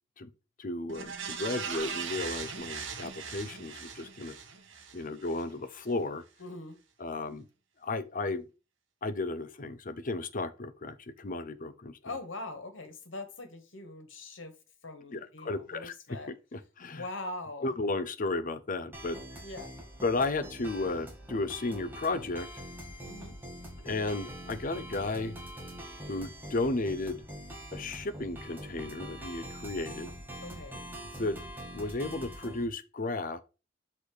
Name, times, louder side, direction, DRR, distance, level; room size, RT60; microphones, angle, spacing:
voice 1, 0.6-4.4 4.9-6.2 7.0-7.5 7.8-8.4 9.0-12.0 15.1-16.2 16.5-17.1 17.6-19.2 20.0-22.5 23.8-25.4 26.1-27.2 27.7-30.1 31.2-31.4 31.7-33.4, left 2 dB, 45° left, 0.7 m, -34 dB
sound 1, 0.9-5.4 5.8-5.9, right 6 dB, 70° right, 1.4 m, -39 dB
voice 2, 6.4-6.8 12.0-14.5 14.8-16.3 16.9-17.8 19.4-19.7 23.0-23.3 30.4-30.8, left 2 dB, 75° left, 1.7 m, -42 dB
sound 2, 18.9-32.7, equal, 10° right, 2.2 m, -44 dB
6.7 x 4.1 x 4.9 m
head